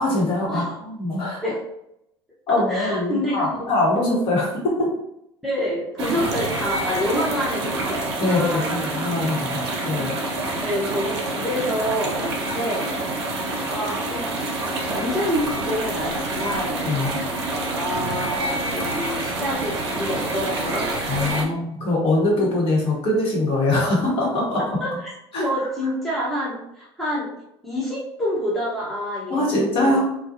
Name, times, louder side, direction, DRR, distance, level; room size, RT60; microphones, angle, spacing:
voice 1, 0.0-1.4 2.5-4.9 8.2-10.1 16.9-17.2 21.1-24.6 24.9-25.0 25.3-25.7 29.3-30.0, left 2 dB, 40° left, -4 dB, 1.1 m, -23 dB
voice 2, 2.5-3.7 5.4-8.8 10.6-12.9 13.6-14.3 14.8-16.8 17.7-21.0 21.4-21.5 22.4-22.5 24.5-25.1 25.4-27.3 27.6-30.0, equal, ahead, -7 dB, 0.7 m, -27 dB
sound 1, 6.0-21.4, right 2 dB, 65° right, 0.5 m, -27 dB
2.2 x 2.1 x 2.7 m, 0.80 s
figure-of-eight pair, 65°, 14 cm